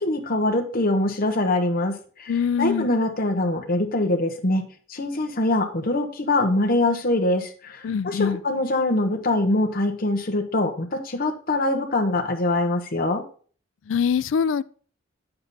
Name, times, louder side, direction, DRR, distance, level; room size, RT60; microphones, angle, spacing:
voice 1, 0.0-4.6 4.9-13.2, left 2 dB, 45° left, 1.2 m, -23 dB
voice 2, 2.3-2.9 7.8-8.4 13.9-14.6, left 7 dB, 70° left, 0.4 m, -23 dB
8.7 x 6.9 x 4.2 m
head